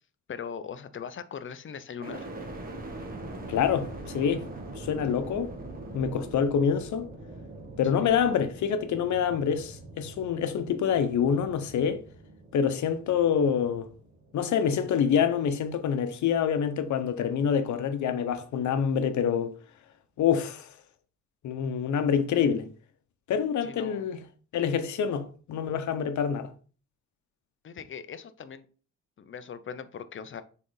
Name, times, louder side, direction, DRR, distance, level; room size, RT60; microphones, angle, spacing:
voice 1, 0.3-2.3 8.0-8.1 23.6-24.0 25.0-25.1 27.6-28.6 29.2-30.4, left 7 dB, 40° left, 0.7 m, -40 dB
sound 1, 2.0-16.0 16.5-17.2, right 2 dB, 30° right, 1.6 m, -43 dB
voice 2, 3.5-4.4 4.8-5.5 5.9-7.1 7.8-12.0 12.5-13.9 14.3-19.5 20.2-20.7 21.4-22.7 23.3-24.2 24.5-26.5, left 7 dB, 70° left, 1.0 m, -26 dB
6.4 x 4.1 x 3.9 m
cardioid pair, 90°, 30 cm